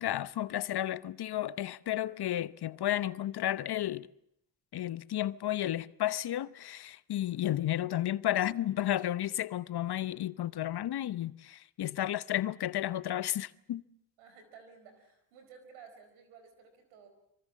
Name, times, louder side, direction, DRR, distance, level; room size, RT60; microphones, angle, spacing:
voice 1, 0.0-4.1 4.7-13.8, left 13 dB, 55° left, 0.9 m, -32 dB
voice 2, 14.2-17.1, right 6 dB, 85° right, 4.6 m, -55 dB
25.0 x 23.0 x 7.5 m
hypercardioid pair, 50°, 46 cm